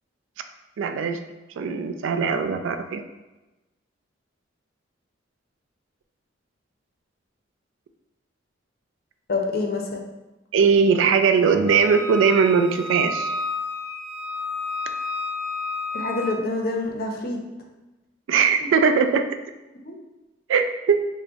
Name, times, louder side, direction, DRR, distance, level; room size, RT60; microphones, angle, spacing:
voice 1, 0.8-1.2 1.6-3.0 10.5-13.3 18.3-19.3 20.5-21.0, right 5 dB, 85° right, 8 dB, 0.3 m, -20 dB
voice 2, 9.3-10.1 15.9-17.4 19.8-20.0, left 3 dB, 55° left, 1 dB, 0.5 m, -27 dB
Wind instrument woodwind instrument, 11.7-16.4, left 2 dB, 5° left, 0.7 m, -31 dB
3.4 x 2.1 x 3.7 m, 1.0 s
head